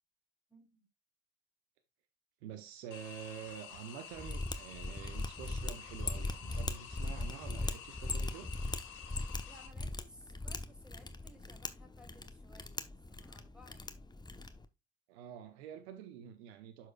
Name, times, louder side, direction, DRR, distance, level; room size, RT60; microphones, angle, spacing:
voice 1, 0.5-0.9 9.5-14.1, equal, 5° right, 2.8 m, -60 dB
voice 2, 2.4-8.5 15.1-16.9, right 9 dB, 75° right, 0.8 m, -48 dB
sound 1, 2.9-9.7, left 8 dB, 65° left, 1.5 m, -50 dB
Mechanisms, 4.2-14.6, left 2 dB, 15° left, 0.9 m, -40 dB
12.0 x 4.4 x 2.3 m
hypercardioid pair, 50°, 32 cm